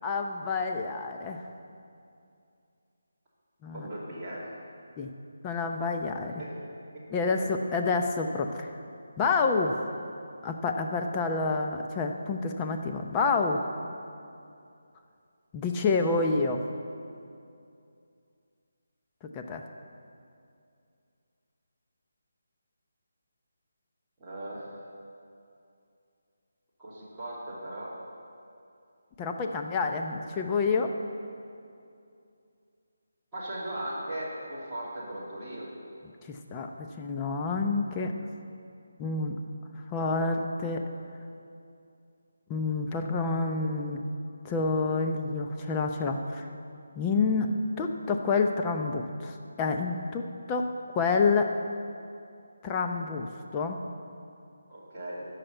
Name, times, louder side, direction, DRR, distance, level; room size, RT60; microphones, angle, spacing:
voice 1, 0.0-1.4 3.6-3.9 5.0-5.1 5.4-6.3 7.1-8.7 9.2-9.8 10.4-13.6 15.5-16.6 19.3-19.6 29.2-30.9 36.3-36.7 37.0-38.1 39.0-39.4 39.9-40.9 42.5-44.0 44.4-46.5 47.0-51.5 52.6-53.8, left 4 dB, 15° left, 3 dB, 0.7 m, -28 dB
voice 2, 3.7-4.5 6.3-7.4 24.2-24.8 26.8-28.0 33.3-35.7 54.7-55.2, right 1 dB, 15° right, -12 dB, 2.7 m, -38 dB
13.0 x 5.8 x 9.1 m, 2.5 s
figure-of-eight pair, 170°, 0 cm